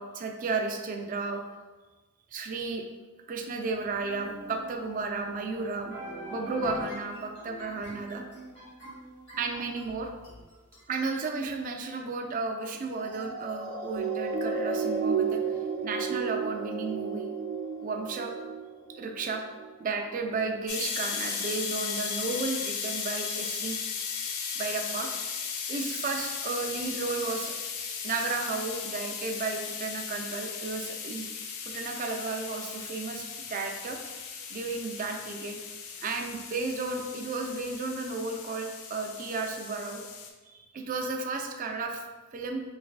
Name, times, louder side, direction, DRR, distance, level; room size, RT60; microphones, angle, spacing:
voice 1, 0.0-1.4 2.3-2.8 3.3-5.9 6.3-8.2 9.4-10.1 10.9-15.4 15.8-17.3 17.8-18.3 19.0-19.4 19.8-23.8 24.6-25.1 25.7-27.5 28.0-31.3 31.6-33.2 33.5-34.0 34.5-35.6 36.0-40.0 40.5-42.6, right 3 dB, 40° right, 4 dB, 0.3 m, -33 dB
sound 1, 4.0-10.8, right 1 dB, 55° left, 1.3 m, -44 dB
sound 2, 13.0-19.7 20.3-20.5, right 5 dB, 90° right, 0.7 m, -32 dB
sound 3, 20.7-40.3, left 6 dB, 80° left, 0.4 m, -36 dB
3.3 x 3.2 x 2.3 m, 1.3 s
head